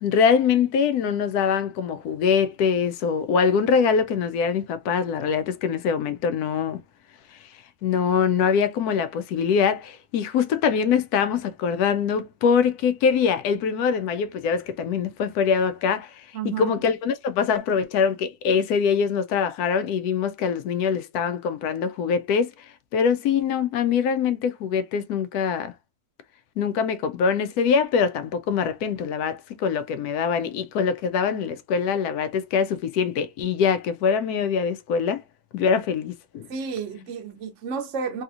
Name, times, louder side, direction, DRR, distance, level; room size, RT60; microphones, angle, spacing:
voice 1, 0.0-6.8 7.8-22.5 22.9-25.7 26.6-35.2 35.5-36.5, left 6 dB, 90° left, 1.1 m, -23 dB
voice 2, 16.3-16.7 36.5-38.2, right 6 dB, 60° right, 0.9 m, -31 dB
3.4 x 2.8 x 2.4 m
omnidirectional pair, 1.6 m